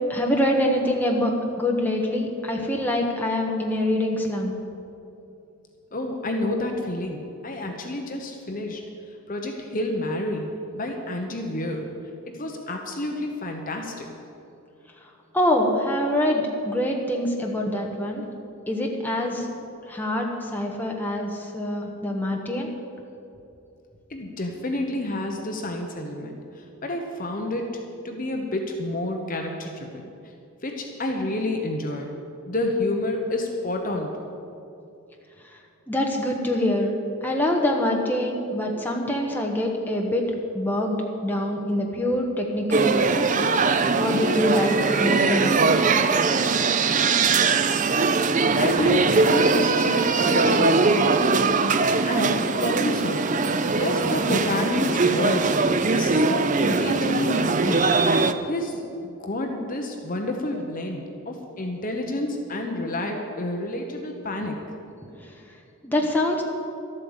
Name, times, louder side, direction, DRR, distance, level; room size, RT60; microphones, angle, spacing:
voice 1, 0.1-4.5 15.3-18.2 18.7-19.5 19.9-22.7 35.9-36.9 37.2-40.2 40.5-41.0 41.2-43.4 43.9-45.7 65.8-66.4, left 1 dB, 10° left, 0 dB, 1.3 m, -25 dB
voice 2, 5.9-8.8 9.3-11.9 12.4-14.1 24.1-27.7 28.0-30.0 30.6-32.1 32.5-34.3 48.5-51.2 52.0-53.3 53.7-55.6 55.9-57.9 58.5-64.6, left 1 dB, 40° left, 3 dB, 1.0 m, -29 dB
sound 1, 42.7-58.3, right 4 dB, 35° right, 0.5 m, -21 dB
12.5 x 8.8 x 8.0 m, 2.7 s
head